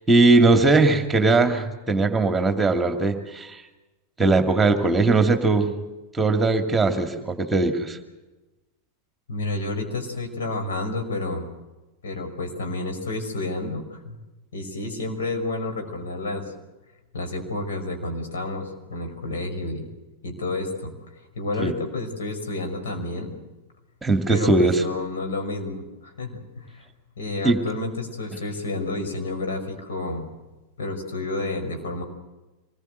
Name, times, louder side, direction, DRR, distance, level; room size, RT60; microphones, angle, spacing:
voice 1, 0.1-3.6 4.2-5.7 6.1-8.0 21.6-21.7 24.0-24.8 27.4-27.6, right 3 dB, 10° right, 6 dB, 2.4 m, -19 dB
voice 2, 9.3-11.5 12.0-14.2 14.5-16.5 17.1-19.8 20.2-20.9 21.4-23.4 24.3-26.8 27.2-30.3 30.8-32.0, left 2 dB, 60° left, 4 dB, 5.4 m, -30 dB
26.0 x 21.0 x 8.0 m, 1.1 s
figure-of-eight pair, 90°, 0 cm